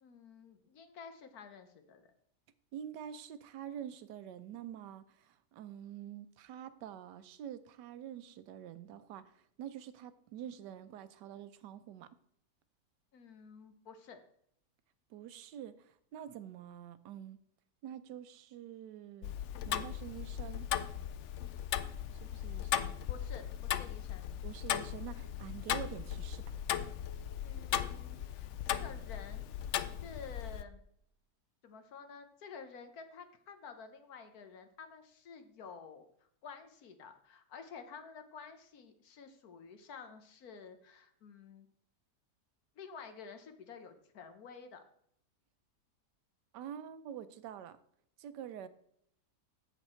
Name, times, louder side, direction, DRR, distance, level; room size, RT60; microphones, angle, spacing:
voice 1, 0.0-2.1 13.1-14.2 23.1-24.3 27.4-29.6 30.0-30.8 31.6-36.0 36.4-41.7 42.8-44.8, left 5 dB, 65° left, 8 dB, 1.4 m, -51 dB
voice 2, 2.7-12.1 15.1-17.4 17.8-19.3 19.7-20.7 22.2-22.9 24.4-26.5 46.5-47.8 48.2-48.7, right 10 dB, 90° right, 13 dB, 1.3 m, -46 dB
Tick-tock, 19.2-30.6, left 10 dB, 90° left, 0.6 m, -37 dB
8.2 x 7.2 x 4.3 m, 0.69 s
omnidirectional pair, 1.8 m